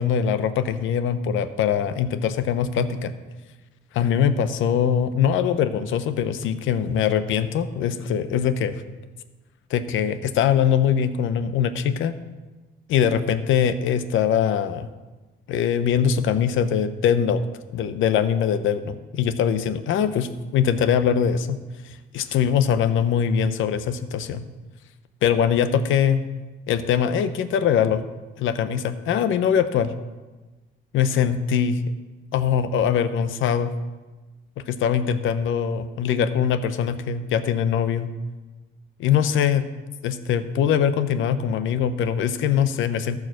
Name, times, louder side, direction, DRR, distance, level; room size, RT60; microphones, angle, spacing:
voice 1, 0.0-3.1 3.9-8.8 9.7-12.1 12.9-14.9 15.5-17.4 17.7-21.6 21.8-24.4 25.2-26.2 26.7-28.0 28.4-29.9 30.9-31.8 32.3-33.7 34.7-38.1 39.0-39.6 40.0-43.2, left 8 dB, 80° left, 12 dB, 0.8 m, -22 dB
14.0 x 4.8 x 6.3 m, 1.2 s
cardioid pair, 90°, 20 cm